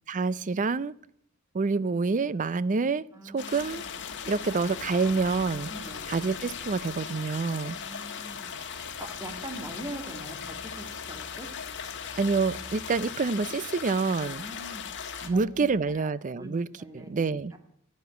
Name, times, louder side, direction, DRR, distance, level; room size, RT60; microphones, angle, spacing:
voice 1, 0.1-0.9 1.5-3.8 4.3-5.7 6.1-7.8 12.2-14.4 15.2-16.7 16.9-17.5, right 4 dB, 35° right, 0.4 m, -27 dB
voice 2, 3.1-4.0 5.7-6.0 7.7-11.5 14.2-14.9 15.3-17.6, right 1 dB, 15° right, 1.8 m, -43 dB
sound 1, 3.4-15.3, left 7 dB, 55° left, 1.6 m, -39 dB
sound 2, 3.5-16.1, left 3 dB, 80° left, 1.3 m, -49 dB
11.5 x 9.5 x 9.2 m
head